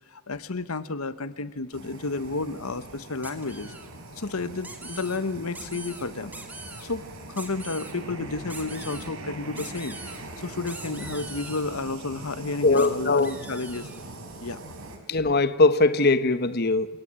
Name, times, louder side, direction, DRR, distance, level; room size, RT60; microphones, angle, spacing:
voice 1, 0.1-3.7 4.2-6.3 6.8-10.0 10.4-13.9 14.4-14.6, left 3 dB, 90° left, 1.1 m, -31 dB
sound 1, 1.7-15.0, right 2 dB, 85° right, 4.8 m, -41 dB
sound 2, 3.2-3.9 4.6-5.2 5.5-6.0 6.3-6.8 7.3-7.9 8.5-9.1 9.6-10.2 10.7-11.6 12.8-12.9 13.2-14.0, right 2 dB, 10° right, 2.6 m, -42 dB
voice 2, 12.6-13.3 15.1-16.9, left 3 dB, 45° left, 1.0 m, -20 dB
28.0 x 18.0 x 9.0 m
head